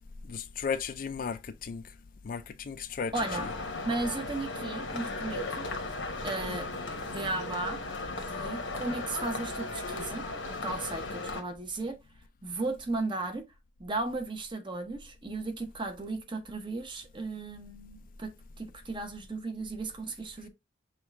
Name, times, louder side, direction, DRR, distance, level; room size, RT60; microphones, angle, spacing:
voice 1, 0.3-1.8 2.2-3.1, left 6 dB, 45° left, 0.4 m, -35 dB
sound 1, 3.1-11.4, left 2 dB, 80° left, 1.0 m, -36 dB
voice 2, 3.1-3.4 3.8-5.7 6.2-6.7 7.0-7.8 8.2-12.0 12.4-13.5 13.8-20.5, right 2 dB, 25° right, 0.8 m, -35 dB
6.1 x 2.4 x 3.3 m
head